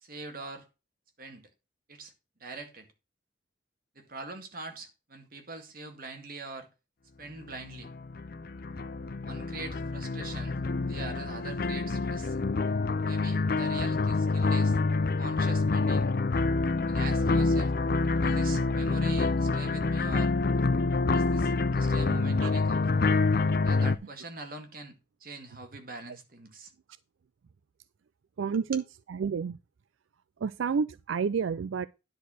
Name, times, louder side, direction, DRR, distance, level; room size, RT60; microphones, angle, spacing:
voice 1, 0.0-0.7 1.2-1.4 1.9-2.1 2.4-2.9 4.0-6.7 7.2-7.9 9.3-10.6 10.8-12.4 13.1-14.8 15.2-16.1 16.9-17.7 18.2-20.3 21.1-23.0 23.6-26.7 28.5-28.6, right 3 dB, 50° right, 2.0 m, -43 dB
sound 1, 7.6-24.0, left 3 dB, 50° left, 0.5 m, -27 dB
voice 2, 22.1-22.5 28.4-29.6 30.4-31.9, right 6 dB, 85° right, 0.4 m, -30 dB
10.0 x 4.7 x 6.2 m
head